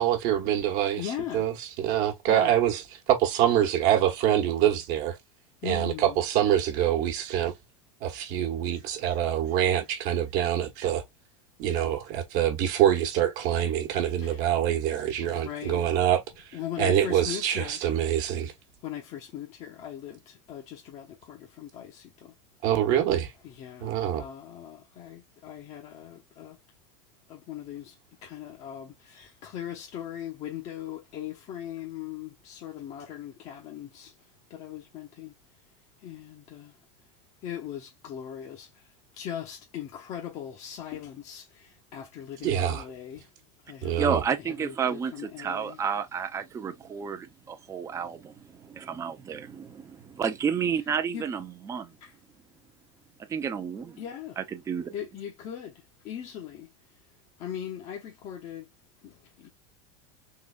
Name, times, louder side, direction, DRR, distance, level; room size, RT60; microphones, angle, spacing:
voice 1, 0.0-5.2 5.6-7.5 8.0-11.0 11.6-18.5 22.6-23.3 23.8-24.3 42.4-42.9 43.8-44.2, right 11 dB, 55° right, 1.2 m, -25 dB
voice 2, 1.0-1.4 2.3-2.5 5.6-6.2 14.2-14.4 15.2-15.9 16.5-17.8 18.8-22.3 23.4-26.6 27.3-27.9 28.2-34.1 34.5-35.3 36.0-36.7 37.4-38.7 39.1-43.3 43.6-43.9 44.6-45.8 51.1-51.2 52.0-52.1 54.0-54.4 54.9-55.7 56.0-56.7 57.4-58.7 59.0-59.5, left 10 dB, 45° left, 0.9 m, -39 dB
voice 3, 44.0-51.9 53.3-54.0 54.4-55.0, right 7 dB, 20° right, 0.6 m, -31 dB
3.8 x 3.0 x 2.2 m
supercardioid pair, 130°, 16 cm